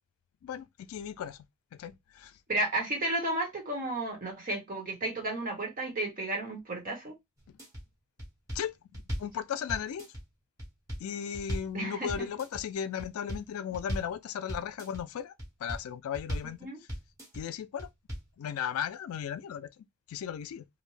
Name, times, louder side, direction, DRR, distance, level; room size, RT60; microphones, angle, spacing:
voice 1, 0.4-1.5 1.7-2.4 7.5-7.6 8.5-10.1 11.0-15.3 15.6-16.7 17.3-17.9 18.4-20.7, left 8 dB, 90° left, 0.3 m, -36 dB
voice 2, 2.5-7.1 11.7-12.1 16.6-16.8, right 2 dB, 40° right, 1.2 m, -33 dB
sound 1, 7.4-7.8 8.2-9.4 9.7-10.2 10.6-11.8 12.1-12.6 13.0-13.5 13.7-14.2 14.5-15.0 15.4-15.9 16.1-16.6 16.9-17.4 17.8-18.3, equal, 15° right, 1.0 m, -37 dB
2.6 x 2.1 x 3.1 m
head